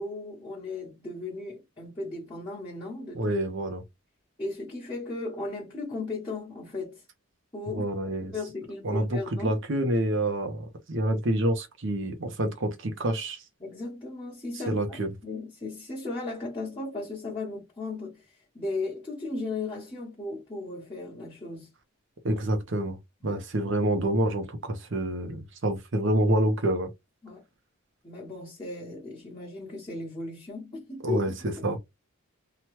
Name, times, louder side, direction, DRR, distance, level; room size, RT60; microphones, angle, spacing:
voice 1, 0.0-3.3 4.4-7.0 7.5-7.8 8.3-9.5 13.6-21.7 23.2-23.4 27.2-27.4 28.0-31.3, left 3 dB, 20° left, 1.1 m, -36 dB
voice 2, 3.2-3.8 7.7-8.3 8.8-13.4 14.7-15.1 22.2-23.0 23.2-26.9 31.0-31.3 31.6-31.8, right 1 dB, 55° right, 0.7 m, -27 dB
2.9 x 2.3 x 3.1 m
head